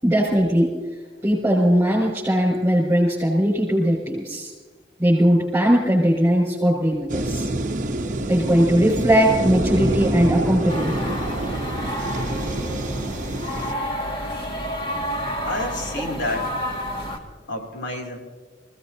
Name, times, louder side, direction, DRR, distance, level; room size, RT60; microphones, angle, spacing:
voice 1, 0.0-0.7 1.2-4.5 5.0-7.5 8.3-11.1, equal, 10° right, -6 dB, 5.9 m, -19 dB
sound 1, 7.1-13.7, right 1 dB, 45° right, 0.8 m, -26 dB
sound 2, 10.7-17.2, equal, 30° left, 2.0 m, -30 dB
voice 2, 15.4-16.6 17.5-18.2, left 1 dB, 80° left, 2 dB, 3.0 m, -29 dB
27.5 x 17.5 x 2.8 m, 1.4 s
head